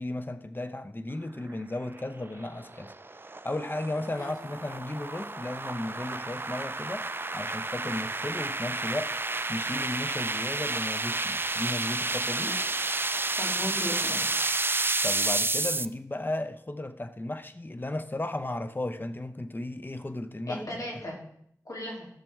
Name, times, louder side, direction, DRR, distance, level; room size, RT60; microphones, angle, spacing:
voice 1, 0.0-2.9 3.4-9.2 9.5-12.5 15.0-20.8, left 1 dB, 30° left, 0.7 m, -35 dB
sound 1, 1.9-15.9, right 2 dB, 35° right, 0.4 m, -31 dB
voice 2, 13.4-14.2 20.5-21.2 21.6-22.1, equal, 60° left, 3.1 m, -36 dB
15.0 x 6.6 x 3.6 m
wide cardioid pair, 45°, 7 cm